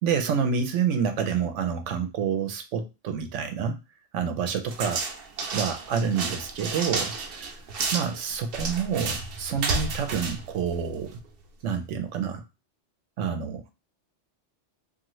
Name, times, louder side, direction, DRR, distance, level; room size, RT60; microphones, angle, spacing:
voice 1, 0.0-3.8 4.1-5.0 5.5-7.5 7.9-11.2 11.6-12.4 13.2-13.7, right 7 dB, 90° right, 7 dB, 1.0 m, -28 dB
sound 1, 4.7-11.3, right 4 dB, 60° right, 0.7 m, -31 dB
2.7 x 2.4 x 3.0 m, 0.27 s
omnidirectional pair, 1.2 m